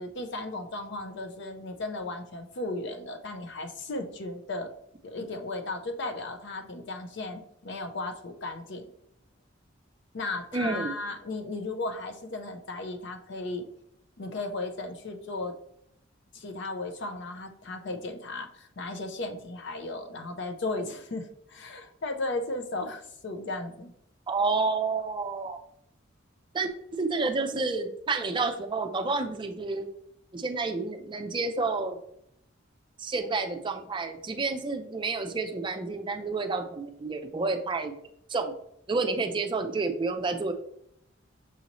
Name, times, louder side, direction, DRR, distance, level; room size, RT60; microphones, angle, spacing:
voice 1, 0.0-4.7 5.0-8.9 10.1-13.6 14.2-15.5 16.3-23.9, left 2 dB, 60° left, 6 dB, 0.6 m, -35 dB
voice 2, 10.5-11.0 24.3-25.6 26.5-29.9 30.3-32.0 33.0-37.9 38.3-38.5 38.9-40.5, right 3 dB, 25° right, 5 dB, 0.5 m, -29 dB
6.2 x 2.7 x 2.9 m, 0.74 s
head